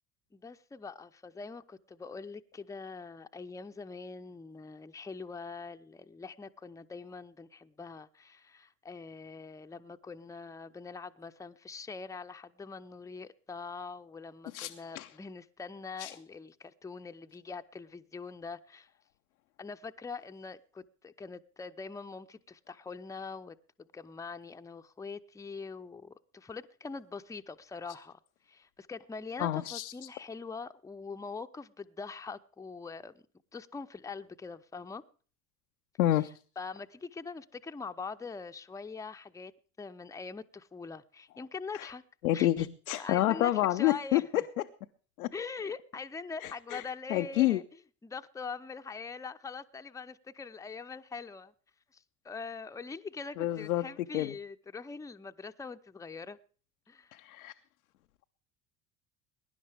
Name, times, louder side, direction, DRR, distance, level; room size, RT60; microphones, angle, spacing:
voice 1, 0.3-18.9 19.6-28.2 28.5-33.2 33.5-35.0 36.6-39.5 39.8-42.0 42.3-42.7 43.0-44.4 45.3-47.6 48.0-51.5 51.9-56.4 56.9-57.1, left 4 dB, 10° left, 0.6 m, -43 dB
voice 2, 14.5-15.1 16.0-16.1 29.4-29.9 36.0-36.3 41.7-41.9 42.2-44.2 45.2-45.3 46.4-46.8 47.1-47.6 53.4-53.9 54.1-54.3 57.1-57.5, left 14 dB, 80° left, 0.6 m, -28 dB
22.0 x 11.0 x 3.4 m
figure-of-eight pair, 60°, 42 cm